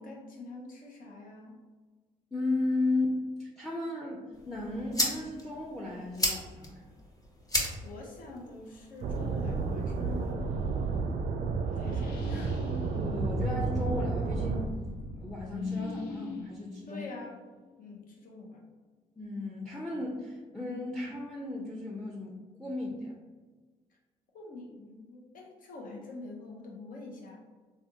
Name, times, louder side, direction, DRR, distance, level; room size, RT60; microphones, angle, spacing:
voice 1, 0.0-1.6 7.8-11.1 11.7-12.6 16.9-17.4 17.8-18.6 24.3-27.4, left 2 dB, 60° left, -1 dB, 0.9 m, -45 dB
voice 2, 2.3-6.8 12.9-14.7 15.2-17.0 19.2-23.1, left 2 dB, 5° left, -2 dB, 0.6 m, -35 dB
sound 1, 4.3-10.3, left 1 dB, 20° left, 0.9 m, -36 dB
sound 2, 9.0-14.7, right 4 dB, 55° right, 0.4 m, -32 dB
sound 3, 9.1-17.8, left 1 dB, 80° left, 0.5 m, -40 dB
3.4 x 2.4 x 2.7 m, 1.3 s
hypercardioid pair, 55°, 16 cm